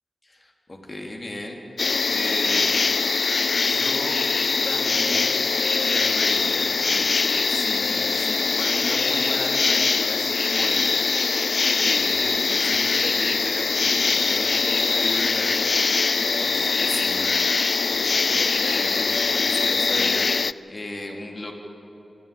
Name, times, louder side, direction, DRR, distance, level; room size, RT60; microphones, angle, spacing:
voice 1, 0.2-1.6 2.1-2.7 3.5-4.2 4.6-5.4 5.8-11.2 11.8-15.9 16.2-17.4 17.9-21.5, left 1 dB, 35° left, 1 dB, 2.9 m, -35 dB
sound 1, 1.8-20.5, left 4 dB, 55° left, 0.4 m, -22 dB
25.5 x 12.5 x 9.0 m, 3.0 s
wide cardioid pair, 80°, 0 cm